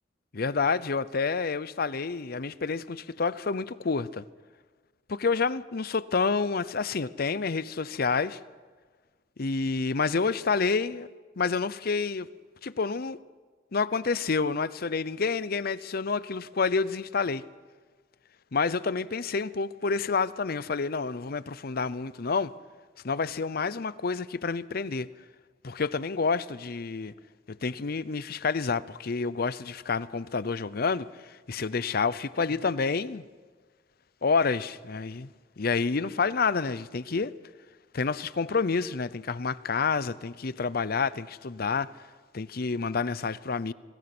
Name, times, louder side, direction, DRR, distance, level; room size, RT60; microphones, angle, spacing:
voice 1, 0.3-4.2 5.1-8.4 9.4-11.1 11.4-12.3 12.6-13.2 13.7-17.4 18.5-22.5 23.0-25.1 25.6-27.1 27.5-33.2 34.2-35.3 35.6-37.3 37.9-41.9 42.3-43.7, left 4 dB, 55° left, 0.7 m, -28 dB
26.0 x 20.0 x 6.1 m
head